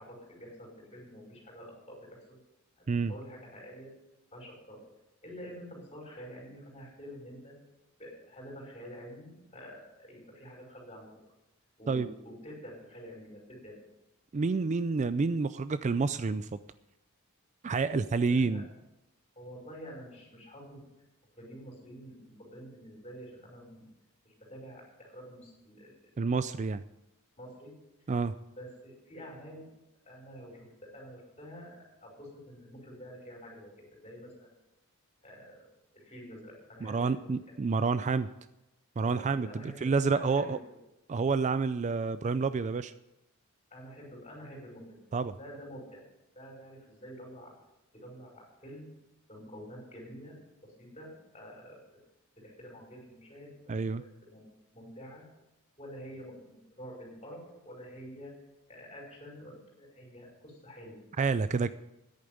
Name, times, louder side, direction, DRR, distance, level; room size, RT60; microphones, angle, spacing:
voice 1, 0.0-2.4 2.8-3.9 4.3-4.8 5.2-7.6 8.0-11.2 11.8-13.7 18.2-18.6 19.4-20.9 21.3-23.9 24.2-26.1 27.4-27.7 28.6-29.7 30.1-34.5 35.2-35.7 35.9-37.3 39.0-39.9 40.1-40.6 43.7-45.0 45.4-46.0 46.3-47.5 47.9-48.9 49.3-50.3 50.6-51.8 52.4-53.5 53.9-54.5 54.7-55.2 55.8-58.3 58.7-61.0, equal, 30° left, -1 dB, 5.8 m, -48 dB
voice 2, 14.3-16.6 17.6-18.6 26.2-26.8 28.1-28.3 36.8-38.3 39.0-40.6 41.1-42.9 45.1-45.4 53.7-54.0 61.2-61.7, right 4 dB, 35° right, 14 dB, 0.4 m, -29 dB
10.5 x 8.7 x 9.4 m, 0.93 s
head